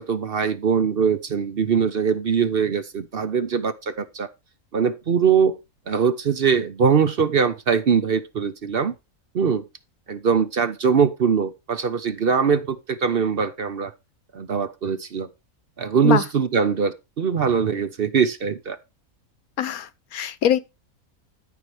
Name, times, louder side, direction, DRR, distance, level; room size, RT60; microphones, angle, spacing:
voice 1, 0.0-4.3 4.7-5.6 5.9-8.9 9.3-9.7 10.1-13.9 14.3-15.3 15.8-18.8, right 6 dB, 50° right, 0.9 m, -22 dB
voice 2, 19.6-20.6, left 10 dB, 90° left, 1.3 m, -23 dB
13.5 x 4.8 x 4.9 m
omnidirectional pair, 1.5 m